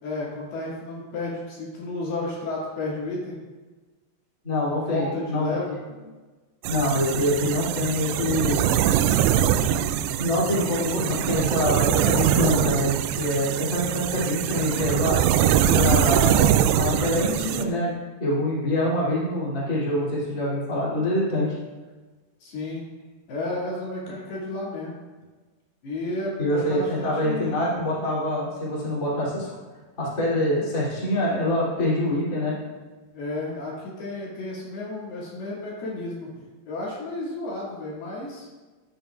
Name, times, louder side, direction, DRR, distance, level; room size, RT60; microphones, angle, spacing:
voice 1, 0.0-3.4 4.6-5.8 10.3-11.3 22.4-22.9 23.3-25.0 25.8-27.6 33.1-36.3 36.7-38.5, left 2 dB, 65° left, -6 dB, 4.1 m, -32 dB
voice 2, 4.4-5.6 6.7-8.6 10.2-15.2 15.7-17.9 18.2-21.6 26.4-29.5 30.0-32.6, left 1 dB, 20° left, -7 dB, 2.7 m, -25 dB
sound 1, 6.6-17.6, right 10 dB, 85° right, 2.3 m, -23 dB
14.0 x 9.3 x 2.5 m, 1.3 s
omnidirectional pair, 5.1 m